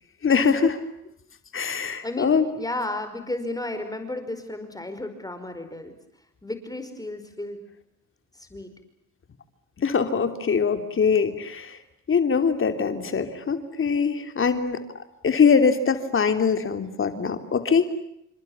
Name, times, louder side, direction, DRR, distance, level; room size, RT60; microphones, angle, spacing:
voice 1, 0.2-0.8 1.5-2.4 9.8-11.8 12.1-14.8 15.2-17.8, left 6 dB, 45° left, 8 dB, 3.1 m, -22 dB
voice 2, 1.7-5.9 6.4-7.6 8.3-8.7, left 2 dB, 10° left, 8 dB, 5.1 m, -33 dB
29.0 x 27.0 x 7.2 m, 0.79 s
cardioid pair, 90°, 30 cm